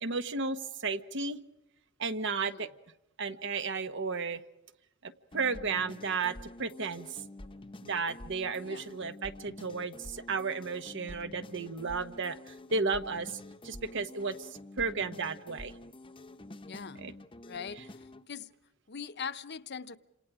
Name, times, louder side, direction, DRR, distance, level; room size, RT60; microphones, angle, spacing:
voice 1, 0.0-1.4 2.0-2.7 3.2-4.4 5.0-7.1 7.8-13.4 13.6-14.5 14.8-15.7 17.0-17.1, right 4 dB, 60° right, 1.2 m, -33 dB
sound 1, 5.3-18.2, left 1 dB, 25° left, 0.9 m, -48 dB
voice 2, 16.6-17.0 17.4-18.5 18.9-20.0, left 6 dB, 55° left, 0.9 m, -42 dB
29.0 x 27.0 x 4.9 m
head